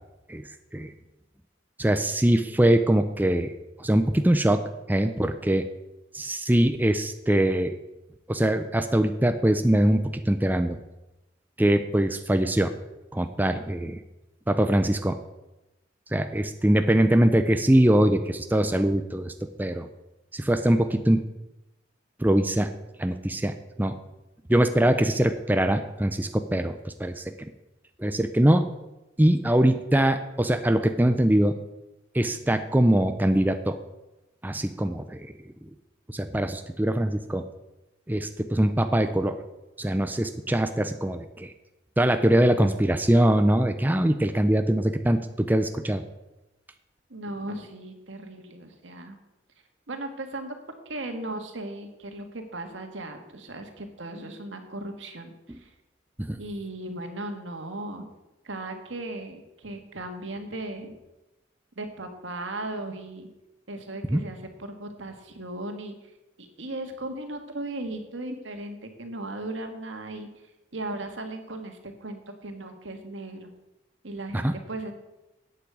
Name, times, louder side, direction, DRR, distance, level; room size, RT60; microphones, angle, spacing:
voice 1, 1.8-3.5 3.8-5.6 6.1-7.8 8.3-10.8 11.6-12.7 13.1-14.0 14.5-15.2 16.1-19.3 19.6-19.9 20.3-21.2 22.2-22.7 23.0-24.0 24.5-27.5 28.0-28.7 29.2-31.6 32.1-33.8 34.4-35.3 36.1-37.4 38.1-39.4 39.8-41.5 42.0-46.0 55.5-55.6 56.2-56.4 64.1-64.2 74.3-74.5, right 1 dB, 10° right, 8 dB, 0.5 m, -22 dB
voice 2, 47.1-49.2 49.9-50.6 50.9-55.7 56.4-58.1 58.4-61.0 61.8-63.3 63.7-66.0 66.4-70.3 70.7-73.5 74.0-74.9, right 2 dB, 80° right, 5 dB, 1.8 m, -37 dB
8.6 x 8.4 x 8.0 m, 0.98 s
head